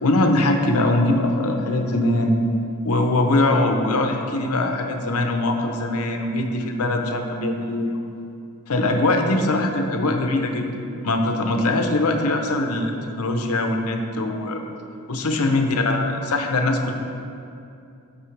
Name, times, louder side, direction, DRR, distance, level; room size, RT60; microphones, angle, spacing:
voice 1, 0.0-2.4 2.8-8.0 8.7-10.7 11.0-14.6 15.1-16.9, left 2 dB, 80° left, 4 dB, 0.8 m, -22 dB
12.5 x 5.4 x 3.3 m, 2.6 s
head